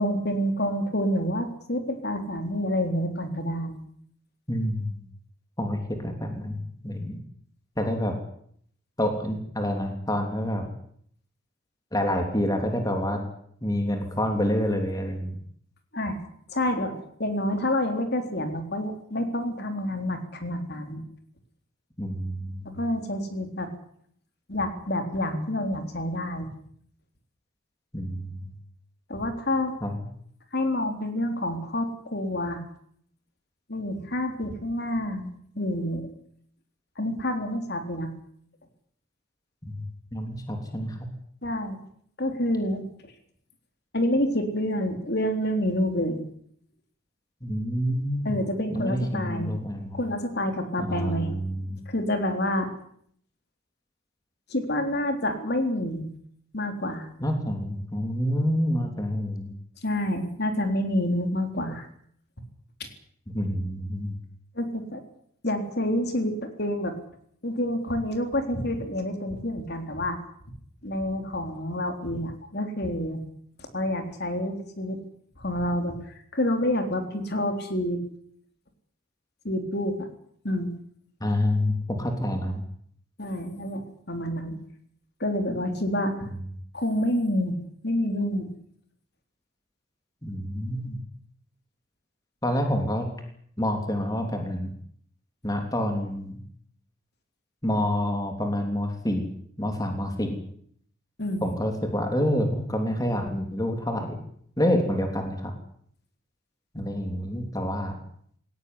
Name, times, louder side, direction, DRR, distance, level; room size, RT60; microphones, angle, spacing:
voice 1, 0.0-3.8 15.9-16.2 16.5-21.0 22.7-23.7 24.5-26.5 29.1-29.7 30.5-32.6 33.7-36.1 37.0-38.1 41.4-41.8 42.2-43.1 43.9-46.2 48.2-49.5 49.9-51.3 51.9-52.7 54.5-56.1 56.5-57.1 59.8-61.9 64.6-65.0 65.4-67.0 67.4-70.2 70.8-73.2 73.6-75.0 75.4-76.0 76.3-78.0 79.4-80.1 80.4-80.7 83.2-84.6 85.2-86.1 86.7-88.5 101.2-101.5, left 1 dB, 50° left, 6 dB, 3.7 m, -28 dB
voice 2, 4.5-5.0 5.6-7.2 7.8-8.2 9.0-10.7 11.9-13.2 13.6-15.4 22.0-22.7 27.9-28.5 29.8-29.9 39.6-39.9 40.1-41.0 47.4-48.3 48.7-50.0 50.8-51.8 57.2-59.5 63.3-64.1 81.2-82.6 86.2-86.3 90.2-91.0 92.4-93.1 93.6-94.7 95.4-96.4 97.6-99.3 99.6-100.4 101.4-104.2 104.6-105.5 106.7-107.9, equal, 15° left, 4 dB, 3.3 m, -28 dB
20.5 x 18.5 x 9.8 m, 0.65 s
head